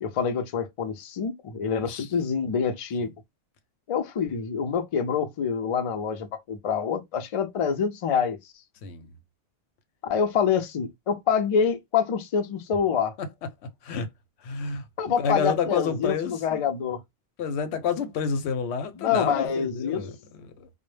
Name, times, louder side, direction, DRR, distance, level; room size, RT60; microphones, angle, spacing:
voice 1, 0.0-3.1 3.9-8.4 10.0-13.1 15.0-17.0 19.0-20.2, left 6 dB, 65° left, 0.3 m, -26 dB
voice 2, 1.8-2.1 3.0-3.1 8.8-9.1 13.2-13.3 13.8-14.1 14.4-16.6 17.4-20.7, left 6 dB, 80° left, 0.8 m, -30 dB
2.0 x 2.0 x 3.0 m
omnidirectional pair, 1.1 m